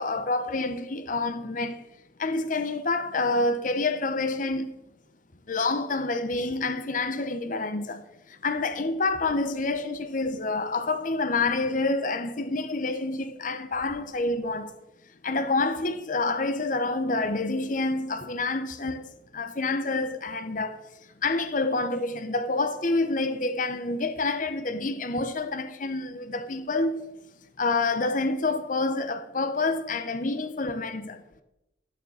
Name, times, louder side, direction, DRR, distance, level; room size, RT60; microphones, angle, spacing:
voice 1, 0.0-1.8 2.2-4.7 5.5-8.0 8.4-14.7 15.2-19.0 19.3-20.8 21.2-27.0 27.6-31.2, left 3 dB, 45° left, 0.9 m, -27 dB
12.0 x 6.7 x 7.4 m
head